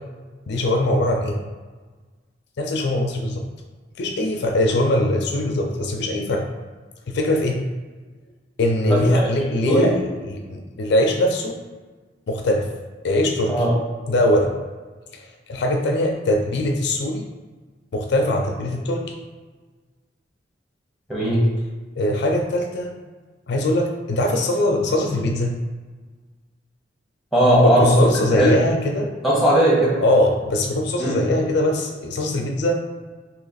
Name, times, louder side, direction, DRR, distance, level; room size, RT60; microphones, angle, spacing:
voice 1, 0.5-1.4 2.6-3.4 4.0-6.4 7.1-7.6 8.6-11.5 12.3-12.7 13.0-13.5 14.1-14.5 15.1-15.2 15.5-17.2 17.9-19.0 22.0-22.9 23.5-25.6 27.6-29.1 30.0-32.8, left 1 dB, 65° left, 3 dB, 0.4 m, -21 dB
voice 2, 8.9-9.3 9.6-9.9 13.5-13.7 21.1-21.5 27.3-27.9 28.2-28.5 29.2-30.0 31.0-31.2, right 1 dB, ahead, -6 dB, 1.2 m, -18 dB
3.1 x 2.8 x 4.0 m, 1.4 s
head